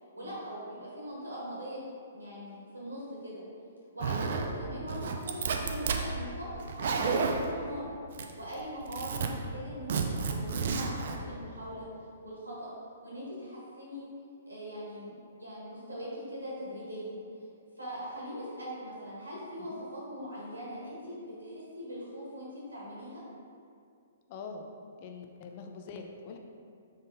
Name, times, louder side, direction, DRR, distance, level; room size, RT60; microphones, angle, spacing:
voice 1, 0.1-1.8 2.1-3.4 3.9-7.9 8.4-11.9 12.2-12.7 13.0-14.1 14.5-17.1 17.8-23.2, equal, 85° right, -6 dB, 1.2 m, -41 dB
Zipper (clothing), 4.0-4.5 4.9-6.0 6.6-7.5 8.1-8.5 8.8-9.3 9.9-11.2, right 5 dB, 55° right, 0.3 m, -31 dB
voice 2, 24.3-24.7 25.0-26.4, left 4 dB, 40° left, 4 dB, 0.4 m, -44 dB
4.0 x 3.5 x 2.7 m, 2.4 s
figure-of-eight pair, 120°, 0 cm